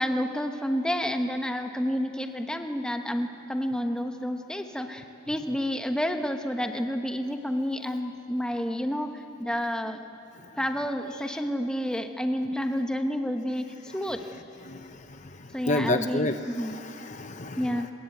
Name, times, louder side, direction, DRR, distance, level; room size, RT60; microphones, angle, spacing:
voice 1, 0.0-10.0 10.6-14.2 15.5-16.7 17.6-17.9, equal, 5° left, 5 dB, 1.1 m, -30 dB
voice 2, 14.3-17.9, left 2 dB, 35° left, 8 dB, 0.8 m, -32 dB
25.0 x 21.5 x 9.1 m, 2.7 s
head